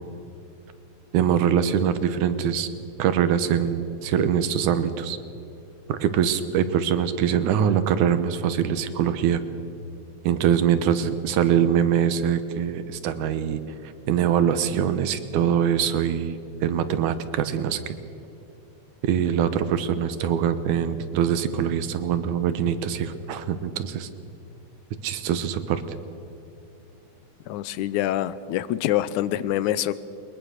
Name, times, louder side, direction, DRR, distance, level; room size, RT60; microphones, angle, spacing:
voice 1, 1.1-2.7 3.0-5.2 5.9-9.4 10.2-13.6 14.1-17.9 19.0-24.1 25.0-25.8, right 8 dB, 85° right, 12 dB, 2.5 m, -23 dB
voice 2, 27.5-29.9, left 13 dB, 85° left, 15 dB, 2.1 m, -25 dB
22.0 x 20.5 x 6.5 m, 2.8 s
omnidirectional pair, 3.4 m